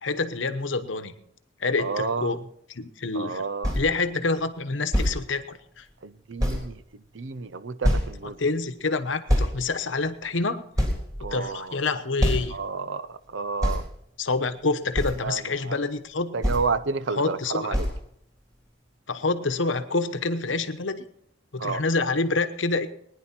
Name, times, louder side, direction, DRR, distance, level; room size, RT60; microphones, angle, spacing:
voice 1, 0.0-1.1 1.6-2.4 2.7-3.5 3.7-5.8 8.4-10.6 11.3-12.6 14.2-16.4 17.1-17.8 19.1-21.0 21.5-22.9, left 3 dB, 80° left, 1.0 m, -27 dB
voice 2, 1.8-2.3 3.1-3.7 6.0-6.8 7.1-8.4 11.2-11.7 12.5-13.8 15.2-15.8 16.3-17.9 21.6-21.8, right 4 dB, 75° right, 0.7 m, -30 dB
sound 1, 3.6-3.9 4.9-5.2 5.9-6.0 6.4-6.7 7.8-8.2 9.3-9.5 10.2-10.3 10.8-11.6 12.2-12.6 13.6-13.8 14.9-15.2 16.4-16.7 17.7-18.0, equal, 20° right, 3.6 m, -24 dB
20.5 x 10.0 x 4.4 m
head